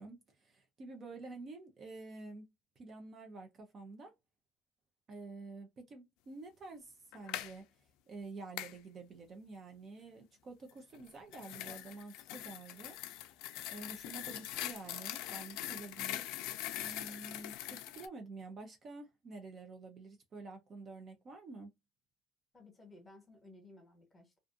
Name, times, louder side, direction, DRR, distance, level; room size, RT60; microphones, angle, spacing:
voice 1, 0.0-2.5 2.8-4.1 5.1-13.0 13.7-16.3 16.8-21.7, right 3 dB, 35° right, 0.6 m, -49 dB
sound 1, 7.1-7.5 8.6-8.8 10.9-18.1, left 14 dB, 80° left, 0.3 m, -42 dB
voice 2, 22.5-24.4, left 2 dB, 15° left, 1.2 m, -57 dB
2.5 x 2.4 x 2.5 m
cardioid pair, 135°, 0 cm